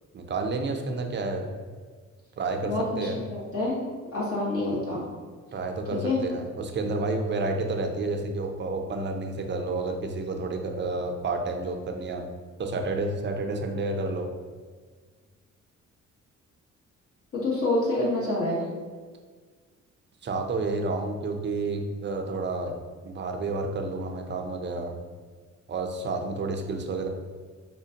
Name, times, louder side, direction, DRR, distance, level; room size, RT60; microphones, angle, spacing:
voice 1, 0.1-1.6 2.4-2.7 3.0-3.2 5.5-12.2 12.6-14.3 20.2-22.8 23.0-25.0 25.7-27.1, right 3 dB, 35° right, 3 dB, 0.5 m, -30 dB
voice 2, 2.6-3.8 4.1-5.0 6.0-6.2 17.3-18.6, left 2 dB, 50° left, -6 dB, 1.2 m, -27 dB
4.9 x 2.2 x 2.8 m, 1.5 s
cardioid pair, 90°, 30 cm